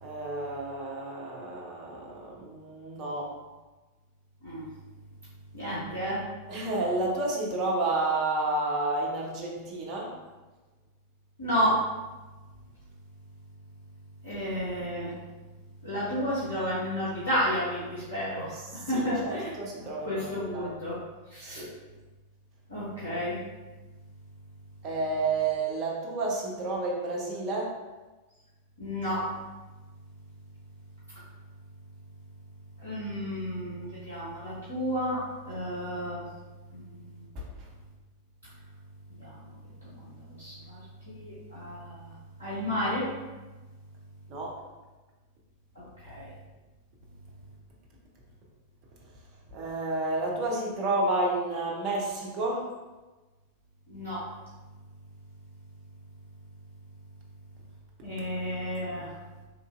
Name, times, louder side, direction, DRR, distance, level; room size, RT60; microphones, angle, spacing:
voice 1, 0.0-3.3 6.5-10.1 18.5-20.7 21.4-21.7 24.8-27.8 37.3-37.7 44.3-44.6 49.5-52.7, right 2 dB, 35° right, -3 dB, 0.8 m, -31 dB
voice 2, 5.5-6.2 11.4-11.7 14.2-15.1 15.8-18.5 18.9-19.5 20.0-20.9 21.3-21.6 22.7-23.4 28.8-29.2 32.8-35.2 35.4-36.2 36.7-37.2 39.1-39.4 39.8-40.8 41.1-42.1 42.4-43.1 45.7-46.3 53.9-54.2 58.0-59.1, equal, 70° left, -11 dB, 1.0 m, -32 dB
3.6 x 2.6 x 2.4 m, 1.2 s
figure-of-eight pair, 90°, 0 cm